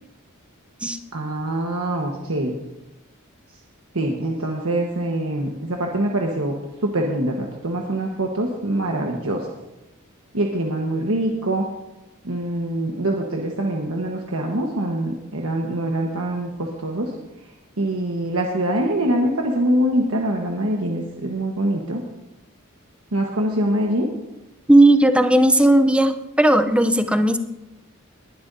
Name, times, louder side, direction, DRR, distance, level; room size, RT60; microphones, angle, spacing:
voice 1, 1.1-2.5 3.9-6.6 6.8-9.5 10.3-11.7 12.2-17.1 17.8-22.0 23.1-24.1, right 1 dB, 75° right, 0 dB, 1.3 m, -24 dB
voice 2, 24.7-27.4, right 1 dB, 5° right, 8 dB, 0.6 m, -16 dB
20.5 x 11.5 x 2.7 m, 0.99 s
head